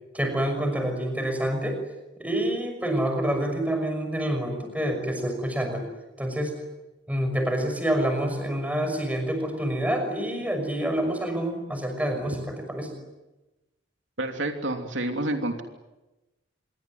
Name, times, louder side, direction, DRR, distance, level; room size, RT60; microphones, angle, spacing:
voice 1, 0.1-1.8 2.2-5.9 6.2-6.5 7.1-13.0, right 1 dB, 10° right, 5 dB, 6.0 m, -27 dB
voice 2, 14.2-15.6, right 1 dB, 75° right, 4 dB, 3.1 m, -28 dB
27.0 x 23.0 x 9.7 m, 1.1 s
head